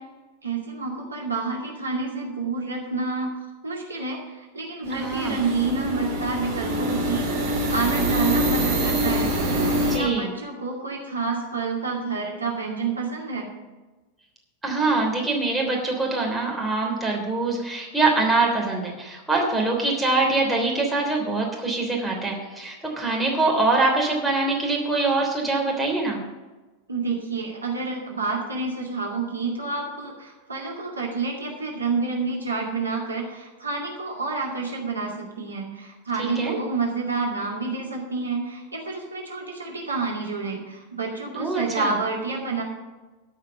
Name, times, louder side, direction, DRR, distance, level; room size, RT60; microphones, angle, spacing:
voice 1, 0.4-3.3 3.6-9.3 9.8-13.5 26.9-42.6, right 4 dB, 80° right, -1 dB, 2.2 m, -29 dB
sound 1, 4.8-10.0, equal, 55° right, 3.3 m, -25 dB
voice 2, 4.9-5.4 9.8-10.3 14.6-26.2 36.2-36.5 41.4-41.9, right 3 dB, 5° right, -2 dB, 3.2 m, -24 dB
13.0 x 5.8 x 7.4 m, 1.2 s
figure-of-eight pair, 90°, 0 cm